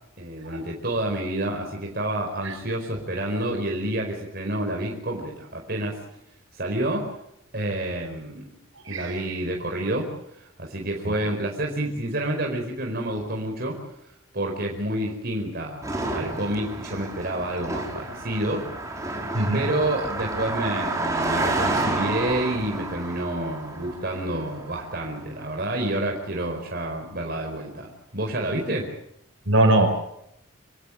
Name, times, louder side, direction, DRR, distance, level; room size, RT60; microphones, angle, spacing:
voice 1, 0.2-6.0 6.6-7.1 7.5-8.4 8.9-10.1 10.4-13.8 14.3-18.6 19.5-28.9, right 1 dB, 45° right, 1 dB, 4.9 m, -29 dB
Car passing by, 15.8-25.4, right 2 dB, 15° right, 4.5 m, -30 dB
voice 2, 19.3-19.7 29.5-29.9, right 1 dB, 70° right, 5 dB, 5.9 m, -21 dB
27.5 x 17.5 x 7.4 m, 0.78 s
head